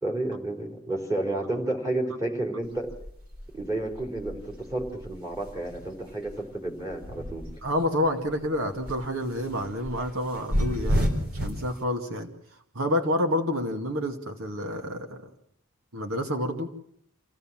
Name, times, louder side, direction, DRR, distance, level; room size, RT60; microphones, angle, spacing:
voice 1, 0.0-2.9 3.5-7.4, right 2 dB, 15° right, 0 dB, 4.0 m, -31 dB
sound 1, 2.6-7.9 8.3-11.7, equal, 45° right, 4.2 m, -31 dB
voice 2, 7.6-12.3 12.7-15.3 15.9-16.7, left 1 dB, 75° right, 4 dB, 2.3 m, -29 dB
27.0 x 16.5 x 7.5 m, 0.71 s
head